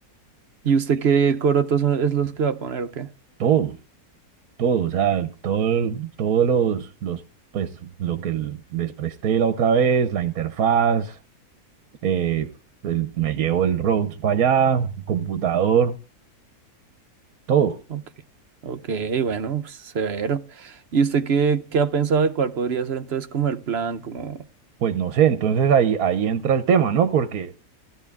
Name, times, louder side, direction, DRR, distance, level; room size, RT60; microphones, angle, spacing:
voice 1, 0.6-3.1 17.9-18.0 18.6-24.5, right 6 dB, 50° right, 1.0 m, -23 dB
voice 2, 3.4-3.8 4.6-7.2 7.5-11.2 12.0-12.5 12.8-16.0 17.5-17.8 24.8-27.5, right 8 dB, 70° right, 1.3 m, -21 dB
16.0 x 13.5 x 3.5 m
omnidirectional pair, 1.6 m